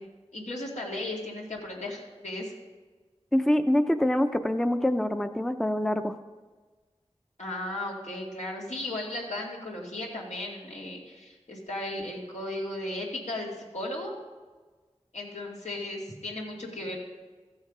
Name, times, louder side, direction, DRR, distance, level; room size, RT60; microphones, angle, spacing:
voice 1, 0.0-2.5 7.4-14.2 15.1-17.1, left 1 dB, 90° left, -3 dB, 2.1 m, -36 dB
voice 2, 3.3-6.2, left 1 dB, 5° left, 9 dB, 0.5 m, -25 dB
14.0 x 7.3 x 4.8 m, 1.4 s
wide cardioid pair, 45°, 11 cm